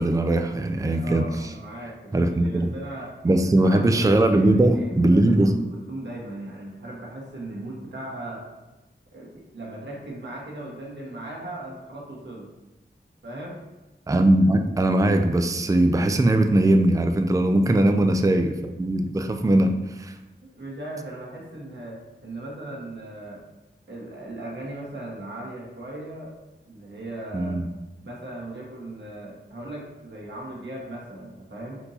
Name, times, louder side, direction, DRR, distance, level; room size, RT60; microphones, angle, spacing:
voice 1, 0.0-1.5 2.1-2.7 3.2-5.5 14.1-20.2 27.3-27.7, right 1 dB, 15° right, 6 dB, 0.4 m, -20 dB
voice 2, 0.9-3.1 3.6-8.4 9.1-12.5 13.2-13.6 17.7-17.8 18.1-18.2 20.6-23.4 23.9-26.3 26.7-27.6 28.0-31.8, right 1 dB, 70° right, -3 dB, 1.3 m, -38 dB
4.4 x 2.7 x 4.1 m, 1.0 s
cardioid pair, 40°, 19 cm